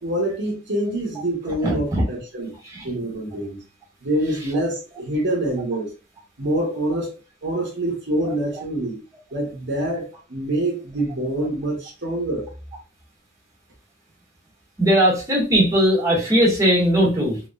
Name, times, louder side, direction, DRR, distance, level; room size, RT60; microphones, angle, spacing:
voice 1, 0.0-2.5 2.8-3.6 4.0-5.9 6.4-7.1 7.4-9.0 9.3-12.5, right 1 dB, 65° right, 1.2 m, -25 dB
voice 2, 1.6-2.0 2.6-2.8 14.8-17.4, equal, 15° right, 1.5 m, -19 dB
3.4 x 3.1 x 2.4 m
head